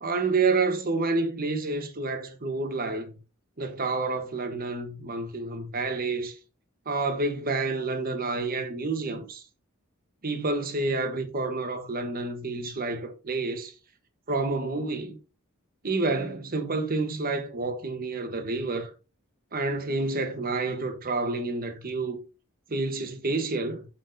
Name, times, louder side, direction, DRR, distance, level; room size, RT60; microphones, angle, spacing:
voice 1, 0.0-3.1 3.6-6.3 6.9-9.4 10.2-13.7 14.3-15.2 15.8-18.9 19.5-22.2 22.7-23.9, right 3 dB, 45° right, 1.2 m, -29 dB
7.0 x 6.8 x 2.7 m
head